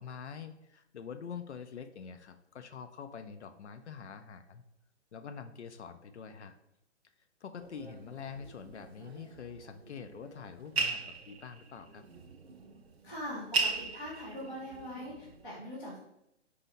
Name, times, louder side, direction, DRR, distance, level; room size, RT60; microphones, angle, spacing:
voice 1, 0.0-4.6 5.1-6.6 7.4-12.0, left 6 dB, 75° left, 8 dB, 0.5 m, -45 dB
sound 1, 7.6-15.4, right 4 dB, 60° right, 0.6 m, -38 dB
voice 2, 13.0-16.0, equal, 5° left, -15 dB, 0.3 m, -42 dB
4.0 x 2.8 x 4.0 m, 0.81 s
figure-of-eight pair, 125°, 35 cm